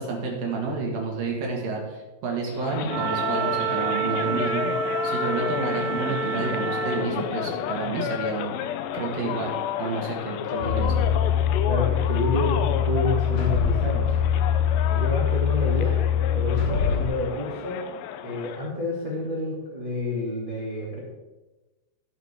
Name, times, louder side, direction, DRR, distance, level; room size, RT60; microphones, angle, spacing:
voice 1, 0.0-4.7 5.0-8.5 8.9-9.5 9.8-10.9 16.9-17.0, right 4 dB, 60° right, 0 dB, 2.9 m, -30 dB
sound 1, 2.5-18.7, left 10 dB, 85° left, 2.5 m, -32 dB
Wind instrument woodwind instrument, 2.9-7.2, right 6 dB, 85° right, 3.2 m, -28 dB
sound 2, 10.6-17.1, left 8 dB, 50° left, 3.9 m, -23 dB
voice 2, 11.7-14.1 14.9-16.0 16.3-17.8 18.2-21.0, left 2 dB, 30° right, -5 dB, 0.9 m, -29 dB
15.5 x 7.3 x 3.6 m, 1.1 s
omnidirectional pair, 5.6 m